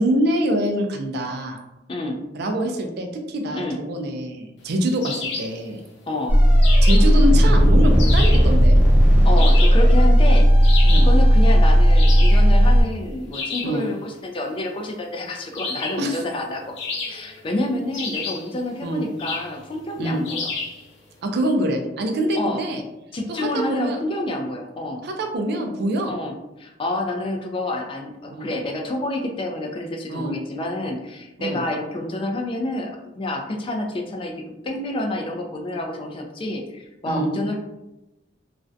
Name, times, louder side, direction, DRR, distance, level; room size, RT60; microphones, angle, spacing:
voice 1, 0.0-1.6 2.3-5.8 6.8-8.8 10.8-11.1 13.6-13.9 16.0-16.2 18.8-19.1 20.0-20.2 21.2-22.8 23.3-24.0 25.0-26.1 28.3-28.5 30.1-30.4 31.4-31.6 37.0-37.3, right 1 dB, 60° right, 4 dB, 0.4 m, -24 dB
voice 2, 1.9-2.2 3.5-3.8 6.1-6.4 9.2-16.8 17.1-20.5 22.4-22.6 23.1-25.0 26.0-26.3 26.6-37.6, left 1 dB, 30° left, 2 dB, 0.3 m, -28 dB
sound 1, 5.0-5.6 6.6-7.2 8.0-8.5 9.4-9.9 10.6-11.2 11.9-12.5 13.3-13.8 15.5-16.1 16.8-17.4 17.9-18.5 19.2-19.5 20.2-20.8, left 4 dB, 65° left, 0.6 m, -30 dB
sound 2, 6.3-12.8, equal, 10° right, 0.6 m, -14 dB
2.4 x 2.1 x 2.5 m, 0.96 s
head